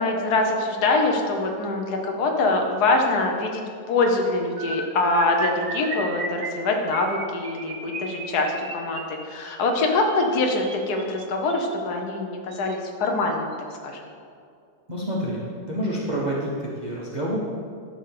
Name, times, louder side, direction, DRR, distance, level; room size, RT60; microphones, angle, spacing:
voice 1, 0.0-13.5 13.8-14.0, left 2 dB, 70° left, 2 dB, 1.5 m, -24 dB
sound 1, 4.6-11.7 12.5-12.7 13.0-13.2 13.5-13.7, right 4 dB, 55° right, 1.2 m, -35 dB
voice 2, 14.9-15.4 15.7-17.4, right 1 dB, 30° right, -5 dB, 1.2 m, -28 dB
12.0 x 4.0 x 6.6 m, 2.3 s
omnidirectional pair, 1.8 m